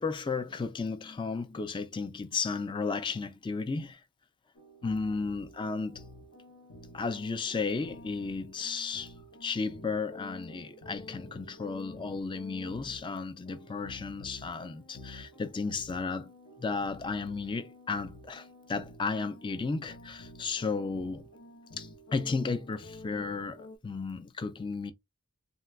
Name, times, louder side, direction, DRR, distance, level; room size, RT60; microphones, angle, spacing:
voice 1, 0.0-4.0 4.8-6.0 6.9-9.1 9.4-16.3 16.6-21.2 21.8-24.9, left 4 dB, 20° left, 0.3 m, -34 dB
sound 1, 4.5-23.8, left 1 dB, 65° left, 0.9 m, -50 dB
3.8 x 2.3 x 2.3 m
head